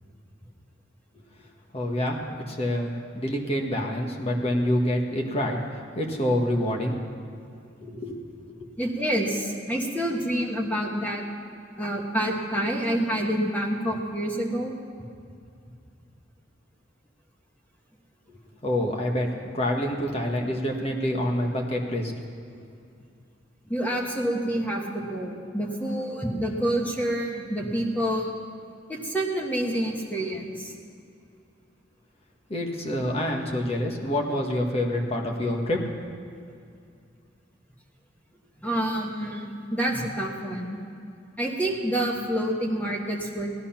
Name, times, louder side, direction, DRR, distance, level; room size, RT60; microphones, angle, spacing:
voice 1, 1.7-7.0 7.8-8.7 18.6-19.3 19.5-22.1 32.5-35.8, left 1 dB, 35° left, 1 dB, 1.6 m, -27 dB
voice 2, 8.8-11.2 11.8-14.7 23.6-28.3 28.9-30.7 38.6-40.8 41.4-43.5, right 1 dB, 10° left, -1 dB, 1.6 m, -28 dB
17.0 x 11.0 x 5.8 m, 2.4 s
head